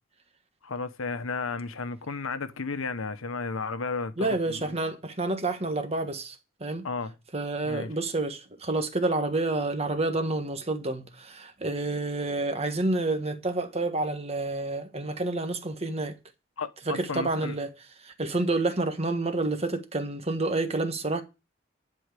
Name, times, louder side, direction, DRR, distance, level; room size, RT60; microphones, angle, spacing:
voice 1, 0.6-4.8 6.8-7.2 7.6-7.9 16.6-17.6, left 4 dB, 85° left, 1.0 m, -33 dB
voice 2, 4.2-6.9 7.3-16.1 16.9-17.7 18.0-21.2, right 2 dB, 30° right, 1.4 m, -29 dB
11.5 x 4.6 x 8.3 m
head